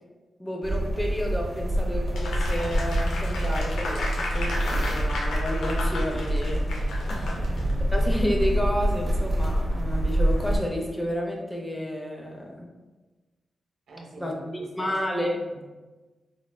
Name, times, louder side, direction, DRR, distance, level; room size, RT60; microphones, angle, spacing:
voice 1, 0.4-6.7 7.9-12.7 14.2-14.4 14.8-15.3, equal, 15° left, 0 dB, 0.5 m, -30 dB
sound 1, 0.6-10.6, right 1 dB, 30° right, 0.6 m, -26 dB
Applause, 2.2-7.7, left 2 dB, 90° left, 0.5 m, -34 dB
voice 2, 7.1-7.8 13.9-15.6, right 1 dB, 90° right, -2 dB, 0.6 m, -43 dB
4.2 x 2.0 x 2.2 m, 1.2 s
cardioid pair, 70°, 0 cm